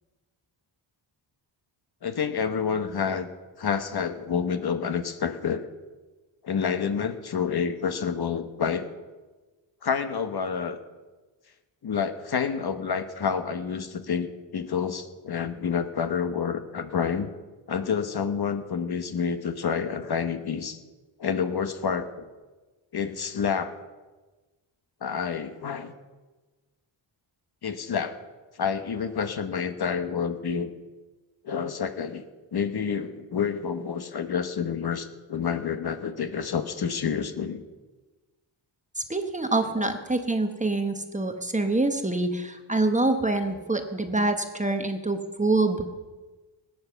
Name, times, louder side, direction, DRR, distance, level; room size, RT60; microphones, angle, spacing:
voice 1, 2.0-3.3 3.6-5.6 6.4-8.9 9.8-10.8 11.8-17.3 17.7-20.8 21.2-22.2 22.9-23.7 25.0-25.9 27.6-28.2 28.5-30.7 31.4-32.2 32.5-37.6 39.7-39.9, left 6 dB, 50° left, 9 dB, 1.1 m, -28 dB
voice 2, 39.0-45.8, right 2 dB, 15° right, 6 dB, 1.0 m, -26 dB
19.5 x 9.6 x 6.9 m, 1.2 s
wide cardioid pair, 170°, 49 cm